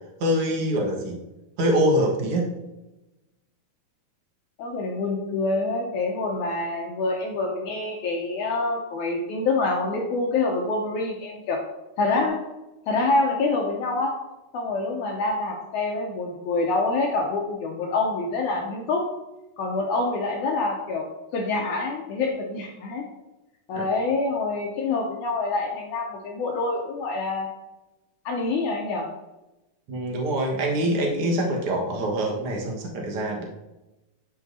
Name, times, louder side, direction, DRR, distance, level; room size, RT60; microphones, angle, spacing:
voice 1, 0.2-1.2 1.6-2.5 23.7-23.8 29.9-33.4, right 1 dB, 55° right, -1 dB, 1.6 m, -24 dB
voice 2, 4.6-11.6 12.0-12.4 12.9-14.1 14.5-19.0 19.6-21.1 21.3-23.0 23.7-27.5 28.3-29.1, left 3 dB, 75° left, 0 dB, 1.8 m, -26 dB
11.5 x 5.1 x 2.7 m, 1.0 s
omnidirectional pair, 4.3 m